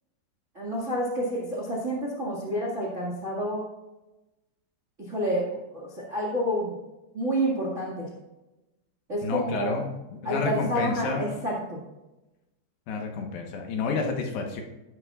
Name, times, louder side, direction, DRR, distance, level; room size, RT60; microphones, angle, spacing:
voice 1, 0.5-3.7 5.0-6.8 7.1-8.1 9.1-9.8 10.2-11.8, equal, 45° right, -2 dB, 0.9 m, -29 dB
voice 2, 9.2-11.3 12.9-14.6, left 4 dB, 70° left, 2 dB, 3.2 m, -30 dB
14.0 x 11.5 x 2.5 m, 1.0 s
omnidirectional pair, 5.2 m